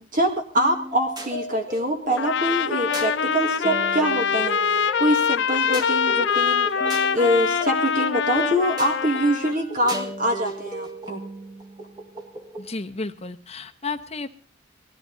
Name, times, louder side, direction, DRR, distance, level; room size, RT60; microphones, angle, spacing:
voice 1, 0.1-6.7 7.1-11.2, equal, 40° right, 4 dB, 1.9 m, -24 dB
sound 1, 0.6-12.7, equal, 20° right, 2.2 m, -35 dB
Trumpet, 2.2-9.5, left 7 dB, 55° left, 0.6 m, -24 dB
voice 2, 12.6-14.3, left 3 dB, 30° left, 8 dB, 1.0 m, -32 dB
19.0 x 14.5 x 4.0 m, 0.39 s
head